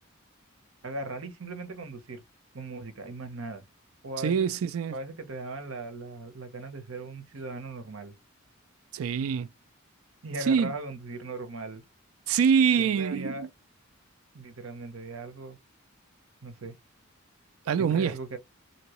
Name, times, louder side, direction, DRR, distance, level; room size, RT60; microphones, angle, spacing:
voice 1, 0.8-2.2 2.5-3.6 4.0-4.6 4.9-8.1 10.2-11.8 12.8-13.5 14.3-15.6 16.4-16.7 17.8-18.4, right 2 dB, 70° right, 0.9 m, -38 dB
voice 2, 4.2-5.0 8.9-9.5 10.4-10.7 12.3-13.5 17.7-18.2, right 7 dB, 85° right, 0.4 m, -25 dB
2.9 x 2.7 x 3.0 m
head